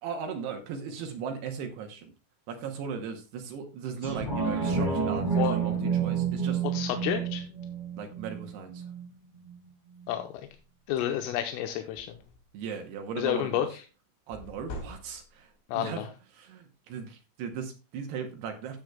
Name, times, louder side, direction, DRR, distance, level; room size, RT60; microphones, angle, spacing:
voice 1, 0.0-2.1 2.5-6.6 8.0-8.9 12.5-13.7 14.3-16.1 16.3-18.8, right 6 dB, 80° right, 5 dB, 2.4 m, -37 dB
sound 1, 4.0-9.0 9.5-9.6, right 6 dB, 10° right, 5.6 m, -29 dB
voice 2, 6.7-7.4 10.1-10.3 10.9-12.2 13.2-13.8 15.7-16.1, left 11 dB, 85° left, 6 dB, 3.3 m, -30 dB
sound 2, 10.6-10.7 11.1-11.3 11.5-12.6 14.3-15.5, left 1 dB, 55° left, 4.1 m, -44 dB
16.0 x 7.7 x 2.2 m, 0.32 s
omnidirectional pair, 6.0 m